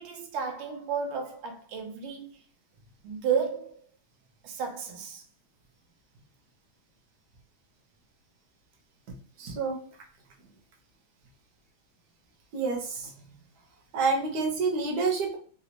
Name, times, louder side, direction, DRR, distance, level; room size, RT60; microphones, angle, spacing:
voice 1, 0.0-2.4 3.0-3.8 4.4-5.2, right 6 dB, 85° right, 1.6 m, -32 dB
voice 2, 9.4-9.8 12.5-13.1 13.9-15.4, right 4 dB, 60° right, 1.2 m, -28 dB
3.9 x 2.4 x 2.8 m
omnidirectional pair, 2.3 m